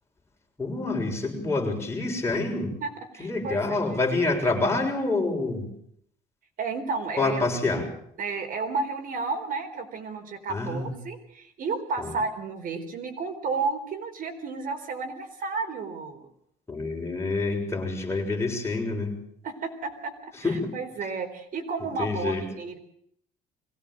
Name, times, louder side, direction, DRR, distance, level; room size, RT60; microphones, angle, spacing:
voice 1, 0.6-2.7 3.2-5.7 7.2-7.9 10.5-10.9 12.0-12.1 16.7-19.1 20.4-20.7 21.8-22.4, left 3 dB, 15° left, 1 dB, 7.0 m, -27 dB
voice 2, 2.8-3.8 6.6-7.4 8.2-16.3 19.4-22.8, right 4 dB, 55° right, 7 dB, 4.2 m, -32 dB
23.0 x 17.0 x 7.8 m, 0.67 s
cardioid pair, 110°, 17 cm